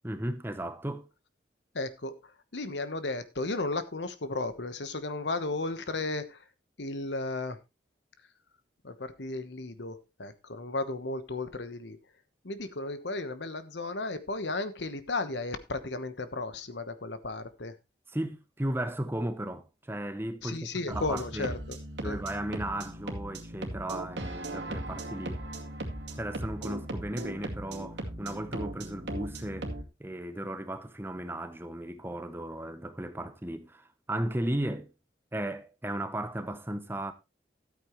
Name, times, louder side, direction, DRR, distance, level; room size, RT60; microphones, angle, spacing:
voice 1, 0.0-1.1 18.1-21.5 22.0-25.4 26.2-29.7 30.0-34.9 35.3-37.1, right 1 dB, 10° right, 0.8 m, -35 dB
voice 2, 1.7-6.4 6.8-7.6 8.8-12.0 12.4-17.8 20.4-21.8 22.0-22.2, left 2 dB, 80° left, 1.2 m, -34 dB
sound 1, 20.9-29.8, right 1 dB, 85° right, 2.3 m, -38 dB
13.0 x 8.8 x 3.1 m
head